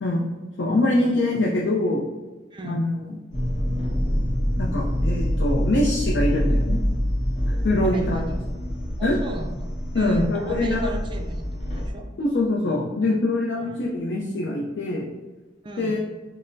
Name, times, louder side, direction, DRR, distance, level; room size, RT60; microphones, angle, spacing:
voice 1, 0.0-2.0 2.6-3.2 4.5-6.8 7.5-8.3 9.0-9.2 9.9-10.9 12.2-15.1 15.8-16.0, left 2 dB, 65° left, -3 dB, 0.5 m, -24 dB
voice 2, 2.5-2.8 7.8-8.3 9.0-9.7 9.9-12.0 13.6-13.8 15.6-16.0, right 1 dB, 25° right, 3 dB, 0.3 m, -35 dB
sound 1, 3.3-11.9, equal, 40° left, 1.0 m, -26 dB
5.4 x 2.0 x 2.5 m, 1.2 s
head